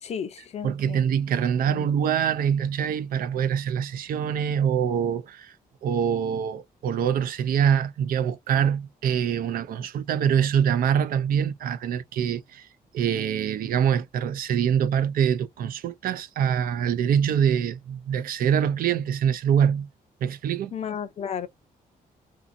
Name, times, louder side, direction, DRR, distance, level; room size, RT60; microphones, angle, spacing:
voice 1, 0.0-1.1 1.7-1.9 20.7-21.5, left 8 dB, 45° left, 0.5 m, -33 dB
voice 2, 0.6-5.5 5.8-12.7 12.9-19.9 20.2-20.7, right 8 dB, 70° right, 0.4 m, -24 dB
2.7 x 2.5 x 2.5 m
wide cardioid pair, 175°, 15 cm